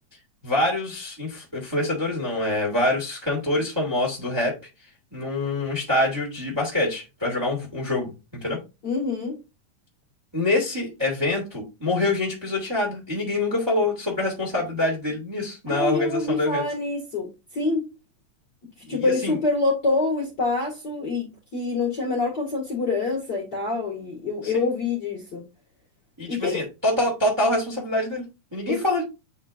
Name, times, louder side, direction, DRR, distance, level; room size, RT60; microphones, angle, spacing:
voice 1, 0.4-4.6 5.1-8.1 8.4-8.6 10.3-16.6 18.9-19.4 24.5-24.7 26.2-29.0, left 2 dB, 10° right, 2.1 m, -25 dB
voice 2, 8.8-9.4 15.7-17.9 18.8-25.4 26.3-26.6 28.7-28.8, left 3 dB, 40° left, 2.0 m, -26 dB
8.4 x 4.3 x 2.6 m
omnidirectional pair, 3.6 m